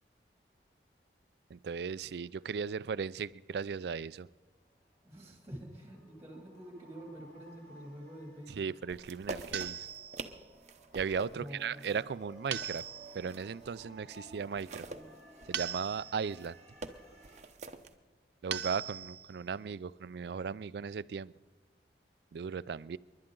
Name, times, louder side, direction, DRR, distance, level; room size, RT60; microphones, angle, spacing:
voice 1, 1.5-4.3 8.5-9.9 10.9-12.8 13.1-14.9 15.5-16.6 18.4-21.3 22.3-23.0, right 6 dB, 70° right, 18 dB, 0.4 m, -37 dB
voice 2, 5.0-8.6 11.3-11.7, right 1 dB, 15° right, 1 dB, 2.7 m, -47 dB
sound 1, 5.2-17.4, right 1 dB, 15° left, 2.9 m, -57 dB
sound 2, 8.9-13.8 14.1-17.9, right 3 dB, 40° right, 0.8 m, -46 dB
sound 3, 9.5-10.5 12.5-13.4 15.5-16.4 18.5-19.4, right 9 dB, 90° right, 0.8 m, -40 dB
29.0 x 11.5 x 3.8 m, 1.3 s
head